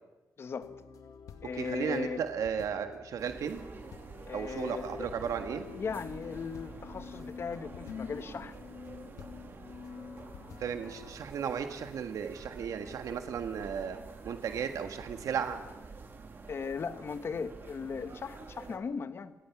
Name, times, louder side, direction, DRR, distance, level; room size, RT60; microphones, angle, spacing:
voice 1, 0.4-0.7 1.4-2.2 4.3-5.1 5.7-8.6 13.1-13.2 16.5-19.3, left 5 dB, 45° left, 12 dB, 1.2 m, -37 dB
sound 1, 0.6-11.2, left 6 dB, 85° left, 2.1 m, -48 dB
voice 2, 1.5-3.6 4.3-5.6 10.6-14.0 14.2-15.6, right 7 dB, 80° right, 7 dB, 1.6 m, -35 dB
sound 2, 3.2-18.8, right 4 dB, 40° right, 2.6 m, -48 dB
29.5 x 17.5 x 6.0 m, 1.1 s
wide cardioid pair, 140°, 6 cm